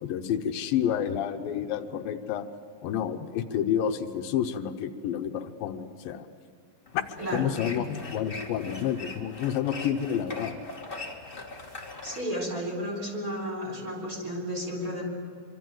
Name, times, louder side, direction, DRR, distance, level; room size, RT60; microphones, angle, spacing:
voice 1, 0.0-2.5 2.8-6.3 6.9-7.1 7.3-10.6, left 9 dB, 80° left, 7 dB, 2.6 m, -29 dB
sound 1, 6.9-12.2, left 3 dB, 20° left, 1.8 m, -41 dB
voice 2, 7.2-7.5 12.0-15.0, equal, 25° right, 0 dB, 4.6 m, -33 dB
26.0 x 25.0 x 7.7 m, 2.1 s
omnidirectional pair, 4.1 m